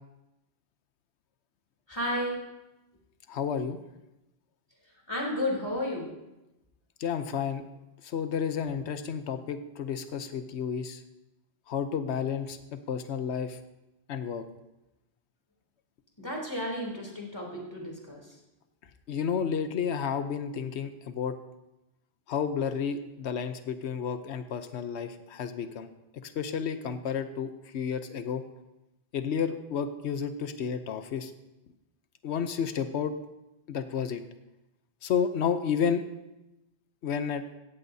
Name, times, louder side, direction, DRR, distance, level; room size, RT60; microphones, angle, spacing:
voice 1, 1.9-2.4 5.1-6.2 16.2-18.4, left 1 dB, 25° left, -1 dB, 3.4 m, -32 dB
voice 2, 3.3-3.8 7.0-7.6 8.0-11.0 11.7-13.6 14.1-14.4 19.1-21.4 22.3-25.9 26.1-28.4 29.1-31.3 32.2-33.1 33.7-34.2 35.0-36.0 37.0-37.4, left 7 dB, 80° left, 9 dB, 1.1 m, -31 dB
17.5 x 14.5 x 2.7 m, 0.95 s
omnidirectional pair, 1.1 m